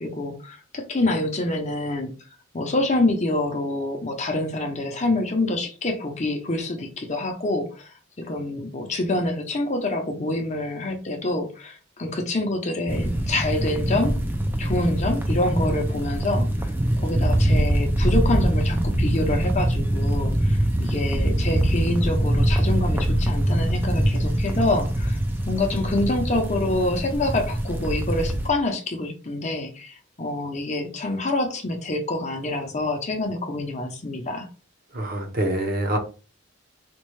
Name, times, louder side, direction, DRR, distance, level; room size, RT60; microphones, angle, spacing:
voice 1, 0.0-2.1 2.5-14.2 14.6-16.7 17.0-25.2 25.5-34.5, left 2 dB, 35° left, 4 dB, 0.7 m, -26 dB
sound 1, 12.9-28.5, right 1 dB, 10° right, 0.4 m, -23 dB
voice 2, 34.9-36.0, right 1 dB, 45° right, 4 dB, 0.8 m, -25 dB
4.3 x 2.3 x 3.1 m, 0.35 s
head